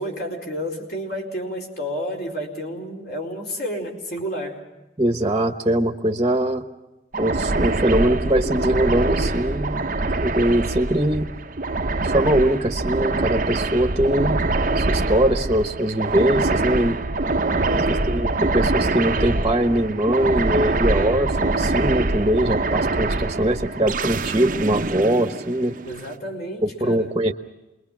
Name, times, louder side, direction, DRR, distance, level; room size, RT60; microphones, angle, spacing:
voice 1, 0.0-4.7 17.6-18.1 25.8-27.1, equal, 55° left, 1 dB, 4.4 m, -31 dB
voice 2, 5.0-6.6 7.2-9.9 10.2-11.3 12.0-14.4 14.8-17.0 17.7-25.7 26.6-27.3, right 1 dB, 25° right, 3 dB, 1.1 m, -22 dB
sound 1, 7.1-26.0, right 2 dB, 45° right, 0.8 m, -24 dB
27.5 x 22.5 x 6.0 m, 1.0 s
head